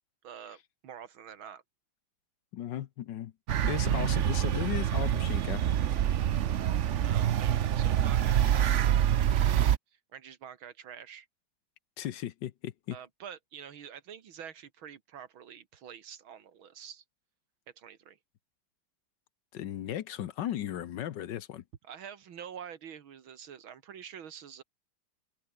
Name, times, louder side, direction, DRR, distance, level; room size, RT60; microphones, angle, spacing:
voice 1, 0.2-1.6 7.0-8.9 9.3-9.7 10.1-11.3 12.9-17.0 17.8-18.2 21.8-24.6, right 8 dB, 85° right, 2.5 m, -47 dB
voice 2, 2.5-3.3 3.6-5.6 12.0-13.0 19.5-21.6, left 11 dB, 70° left, 1.4 m, -36 dB
sound 1, 3.5-9.8, right 10 dB, 65° right, 0.7 m, -26 dB
omnidirectional pair, 2.2 m